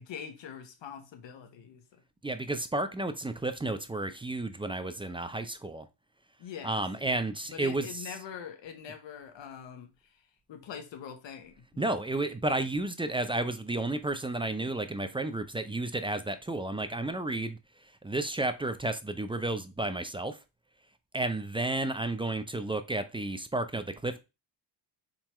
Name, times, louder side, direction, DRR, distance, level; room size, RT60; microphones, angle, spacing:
voice 1, 0.0-2.0 6.4-7.1 7.5-12.1, left 8 dB, 65° left, 1.1 m, -44 dB
voice 2, 2.2-5.9 6.6-8.1 11.8-17.6 18.0-20.4 21.1-24.2, right 2 dB, 10° right, 0.5 m, -32 dB
4.2 x 3.8 x 3.0 m
cardioid pair, 85°, 47 cm